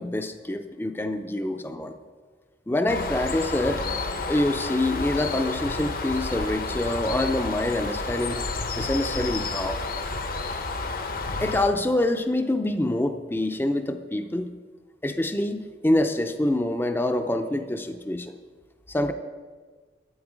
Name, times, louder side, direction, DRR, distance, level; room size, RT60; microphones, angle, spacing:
voice 1, 0.0-1.9 2.7-3.9 4.3-8.4 8.8-9.8 11.4-14.5 15.0-18.3 18.9-19.1, left 1 dB, 10° left, 7 dB, 0.5 m, -26 dB
Bird, 2.9-11.7, left 3 dB, 55° left, 0.9 m, -30 dB
12.0 x 9.6 x 5.0 m, 1.4 s
head